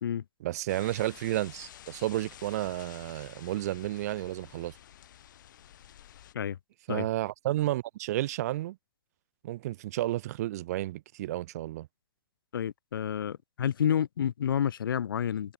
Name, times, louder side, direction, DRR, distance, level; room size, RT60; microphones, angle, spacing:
voice 1, 0.4-4.8 6.9-8.8 9.4-11.9, right 15 dB, 50° right, 0.4 m, -32 dB
sound 1, 0.7-6.3, left 11 dB, 65° left, 5.6 m, -51 dB
voice 2, 12.5-15.5, left 9 dB, 90° left, 0.8 m, -29 dB
hypercardioid pair, 155°, 11 cm